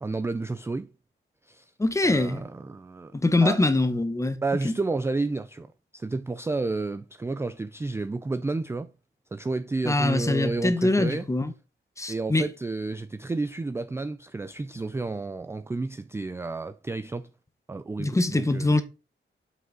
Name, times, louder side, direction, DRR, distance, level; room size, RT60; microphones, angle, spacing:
voice 1, 0.0-0.9 1.4-1.7 2.0-3.1 3.4-3.6 4.4-8.9 9.3-11.3 12.1-17.3 17.7-18.8, right 3 dB, 15° right, 0.3 m, -31 dB
voice 2, 1.8-2.4 3.1-4.4 4.6-4.7 9.8-11.5 12.0-12.5 18.0-18.8, left 2 dB, 15° left, 0.8 m, -23 dB
7.7 x 5.6 x 3.8 m
wide cardioid pair, 150°, 20 cm